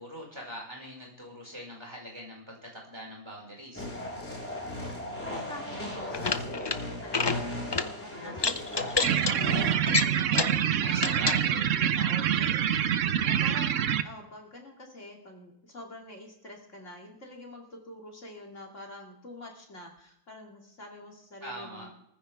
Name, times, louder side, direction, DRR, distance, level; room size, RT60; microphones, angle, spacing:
voice 1, 0.0-3.8 10.8-11.6 21.4-21.9, equal, 20° right, -2 dB, 5.4 m, -42 dB
sound 1, 3.7-9.7, left 1 dB, 10° left, 4.3 m, -36 dB
voice 2, 5.2-21.9, left 1 dB, 55° left, 0 dB, 2.9 m, -46 dB
sound 2, 6.0-6.8 7.1-7.4 7.7-7.9 8.4-9.3 9.9-10.6 11.0-11.4, left 4 dB, 40° left, 0.3 m, -28 dB
sound 3, 9.0-14.0, right 9 dB, 65° right, 1.0 m, -26 dB
19.5 x 15.0 x 3.5 m, 0.77 s
omnidirectional pair, 1.5 m